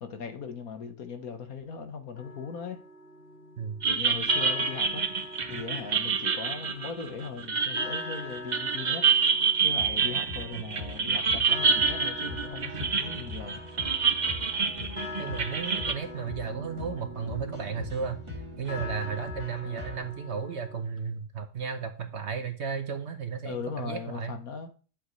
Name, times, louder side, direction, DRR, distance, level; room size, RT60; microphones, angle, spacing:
voice 1, 0.0-2.8 3.9-5.1 5.5-9.1 9.6-13.6 19.6-19.9 23.4-24.7, left 6 dB, 70° left, 1.6 m, -39 dB
sound 1, 2.2-20.8, left 2 dB, 40° left, 1.7 m, -44 dB
sound 2, 3.8-15.9, right 5 dB, 35° right, 0.9 m, -27 dB
sound 3, 9.7-20.1, left 1 dB, 20° right, 2.2 m, -42 dB
voice 2, 15.2-18.2 18.6-24.4, right 6 dB, 50° right, 1.2 m, -34 dB
11.0 x 7.9 x 3.2 m
omnidirectional pair, 1.6 m